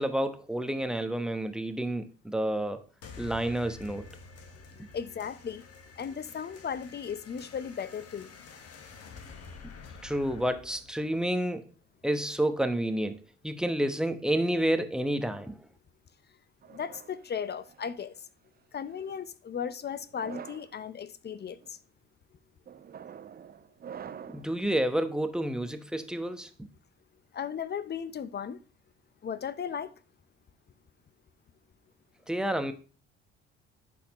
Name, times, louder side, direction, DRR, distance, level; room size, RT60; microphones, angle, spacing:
voice 1, 0.0-2.8 3.2-4.1 10.0-11.6 12.0-13.2 13.4-15.6 24.3-26.5 32.3-32.7, right 1 dB, ahead, 1.0 m, -29 dB
sound 1, 3.0-12.0, left 4 dB, 50° left, 1.3 m, -49 dB
voice 2, 4.9-5.7 6.0-8.3 16.7-18.1 18.7-21.8 27.3-28.6 29.2-29.9, left 7 dB, 35° left, 0.7 m, -36 dB
sound 2, 16.6-18.0 18.8-19.2 20.0-20.7 21.4-21.7 22.7-24.5, right 8 dB, 30° right, 0.5 m, -46 dB
11.0 x 4.3 x 2.9 m
hypercardioid pair, 60°, 30 cm